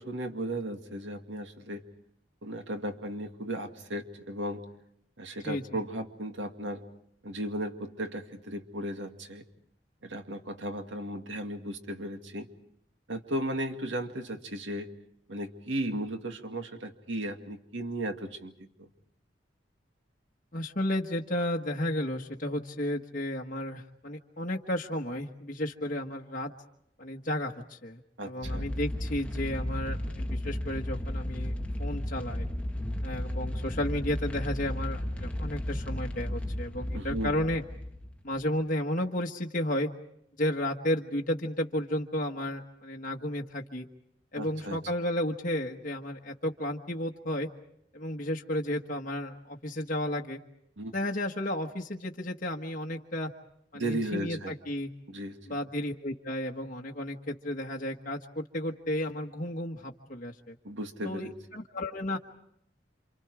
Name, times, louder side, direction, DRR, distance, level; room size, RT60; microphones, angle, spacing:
voice 1, 0.0-1.8 2.4-4.6 5.2-6.8 7.2-9.4 10.0-12.5 13.1-14.9 15.3-18.5 18.8-18.9 28.2-28.7 36.9-37.4 44.4-44.8 50.8-50.9 53.7-54.5 55.1-55.4 60.6-61.3, right 1 dB, 90° right, 5 dB, 2.3 m, -35 dB
voice 2, 5.4-5.8 20.5-26.5 27.0-31.5 31.8-32.5 33.0-37.6 38.2-39.9 40.4-43.9 44.3-47.5 47.9-50.4 50.9-53.3 53.7-54.9 55.5-60.5 61.0-62.2, left 1 dB, 45° left, 0 dB, 1.5 m, -33 dB
sound 1, 28.4-38.5, left 1 dB, 5° left, 1.3 m, -34 dB
29.0 x 27.0 x 4.9 m, 0.73 s
head